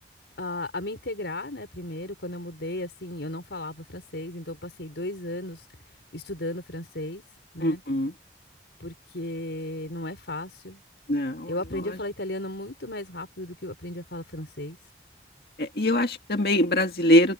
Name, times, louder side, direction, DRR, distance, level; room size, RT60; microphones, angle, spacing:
voice 1, 0.4-5.7 6.1-7.2 7.5-7.8 8.8-10.8 11.5-14.8, left 1 dB, 80° left, 4.6 m, -35 dB
voice 2, 7.6-8.1 11.1-11.5 15.6-17.3, left 1 dB, 60° left, 2.2 m, -23 dB
open air
head